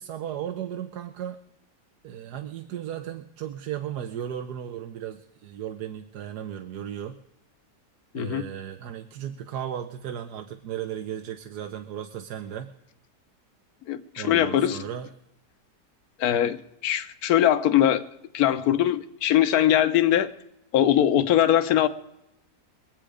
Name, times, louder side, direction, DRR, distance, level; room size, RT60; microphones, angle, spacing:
voice 1, 0.0-1.4 2.0-7.2 8.1-12.7 14.2-15.1, right 10 dB, 70° right, 1.3 m, -35 dB
voice 2, 13.9-14.8 16.2-16.6 16.8-18.0 18.3-20.3 20.7-21.9, left 11 dB, 65° left, 1.3 m, -21 dB
23.0 x 8.2 x 5.0 m
omnidirectional pair, 1.9 m